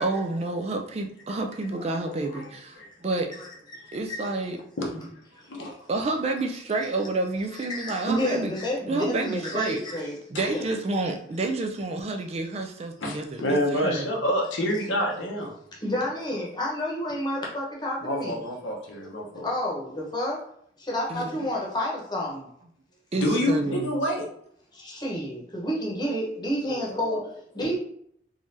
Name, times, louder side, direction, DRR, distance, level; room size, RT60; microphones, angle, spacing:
voice 1, 0.0-3.3 3.9-4.6 5.9-8.5 8.9-9.8 10.3-14.1 21.1-21.4 23.1-23.9, right 2 dB, 35° right, 4 dB, 0.4 m, -29 dB
voice 2, 1.9-2.9 3.9-4.0 4.8-5.0 5.5-5.8 9.4-9.5 13.0-15.5 18.0-19.5 23.1-24.3 26.6-27.2 27.6-27.7, equal, 85° left, 0 dB, 0.9 m, -28 dB
voice 3, 3.4-4.2 5.4-5.5 7.5-10.2 10.4-10.7 15.8-18.4 19.3-20.4 20.8-22.5 24.7-27.7, equal, 20° left, -3 dB, 1.0 m, -30 dB
3.7 x 3.0 x 2.7 m, 0.67 s
head